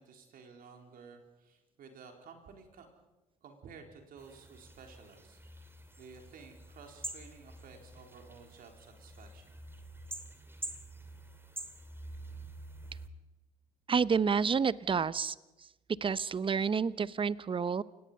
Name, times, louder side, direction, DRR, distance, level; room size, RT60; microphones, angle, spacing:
voice 1, 0.0-2.9 3.4-5.4 6.0-9.6, right 5 dB, 60° right, 4 dB, 4.0 m, -53 dB
sound 1, 4.2-13.1, right 1 dB, 15° right, 2.7 m, -47 dB
voice 2, 13.9-15.3 16.0-17.8, right 6 dB, 30° right, 19 dB, 0.8 m, -29 dB
29.0 x 17.5 x 5.6 m, 1.1 s
hypercardioid pair, 55°, 17 cm